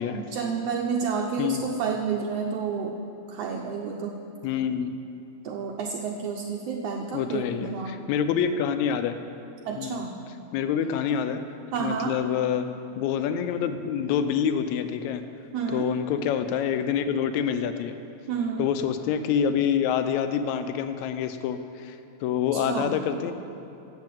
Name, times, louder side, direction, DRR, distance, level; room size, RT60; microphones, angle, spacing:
voice 1, 0.1-3.0 3.3-4.2 5.4-8.0 9.6-10.2 11.7-12.2 15.5-15.9 18.3-18.7 22.5-23.0, right 6 dB, 75° right, 1 dB, 1.5 m, -30 dB
voice 2, 4.4-4.9 7.1-9.2 9.8-10.0 10.5-11.4 11.8-12.7 13.0-15.2 15.7-18.0 18.6-22.0 22.2-23.3, left 8 dB, 80° left, 9 dB, 1.9 m, -26 dB
8.1 x 7.7 x 7.4 m, 2.8 s
omnidirectional pair, 3.3 m